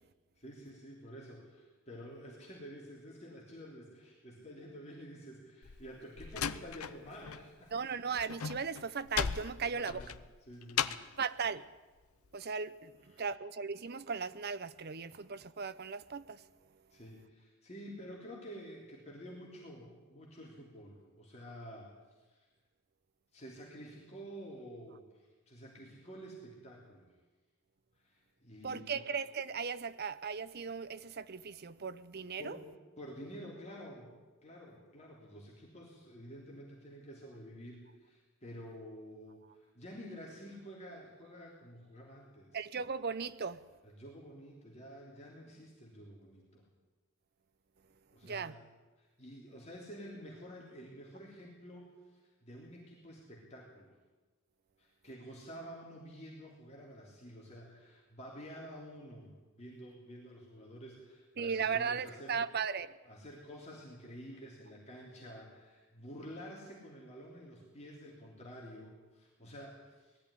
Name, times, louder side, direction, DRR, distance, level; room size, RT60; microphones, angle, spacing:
voice 1, 0.4-7.7 9.6-10.1 10.4-11.2 13.0-13.3 16.9-21.9 22.3-22.4 23.3-27.1 28.0-29.0 32.4-34.2 34.4-42.6 43.8-46.7 48.1-48.7 49.0-53.9 54.8-62.4 63.0-70.2, equal, 30° left, 3.4 m, -50 dB
Slam, 5.6-7.4 7.7-11.2, left 8 dB, 80° left, 0.7 m, -37 dB
voice 2, 7.7-10.0 11.2-11.6 12.3-12.9 13.2-16.4 28.6-32.6 42.5-43.6 48.2-48.5 61.4-62.9, right 6 dB, 50° right, 0.7 m, -37 dB
19.5 x 13.5 x 10.0 m
head